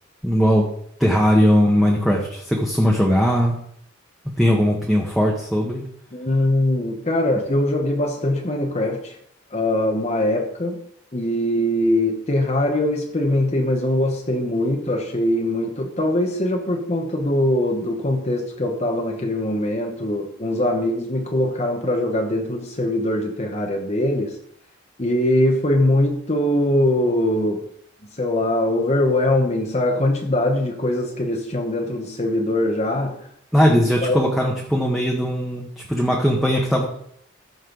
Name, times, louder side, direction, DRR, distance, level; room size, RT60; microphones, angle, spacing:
voice 1, 0.2-0.7 1.0-3.6 4.4-5.8 33.5-36.9, equal, ahead, -2 dB, 1.2 m, -19 dB
voice 2, 6.1-9.2 9.5-10.8 11.1-24.3 25.0-27.7 28.1-33.3 34.0-34.2, left 1 dB, 35° left, 2 dB, 1.0 m, -22 dB
14.5 x 6.5 x 3.9 m, 0.68 s
head